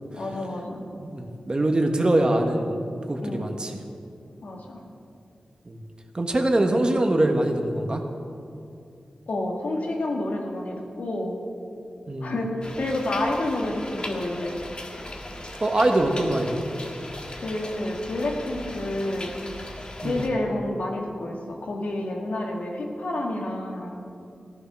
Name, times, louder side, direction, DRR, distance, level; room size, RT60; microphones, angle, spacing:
voice 1, 0.1-0.8 3.2-3.5 4.4-4.8 9.3-11.4 12.2-14.6 17.4-19.3 20.0-24.0, left 1 dB, 85° left, 0 dB, 1.9 m, -29 dB
voice 2, 0.9-2.8 3.1-3.8 5.6-5.8 6.1-8.0 12.1-12.3 15.6-16.6 20.0-20.3, right 1 dB, 35° right, 4 dB, 1.5 m, -23 dB
sound 1, 12.6-20.3, left 1 dB, 40° left, 1.6 m, -38 dB
14.5 x 10.5 x 6.2 m, 2.5 s
wide cardioid pair, 65°, 2 cm